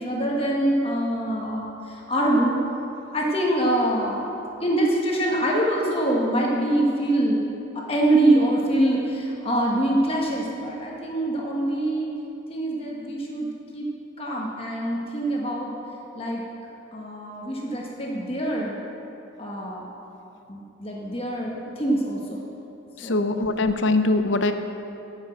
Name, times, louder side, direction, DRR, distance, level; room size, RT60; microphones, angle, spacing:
voice 1, 0.0-2.6 3.1-4.2 4.6-7.5 7.7-12.1 12.5-13.9 14.2-15.7 16.1-16.4 16.9-18.8 19.4-19.9 20.5-22.4 23.0-23.4, right 1 dB, 30° left, -2 dB, 1.3 m, -24 dB
voice 2, 23.0-24.5, left 2 dB, 65° left, 9 dB, 0.6 m, -22 dB
10.0 x 7.2 x 7.8 m, 2.9 s
head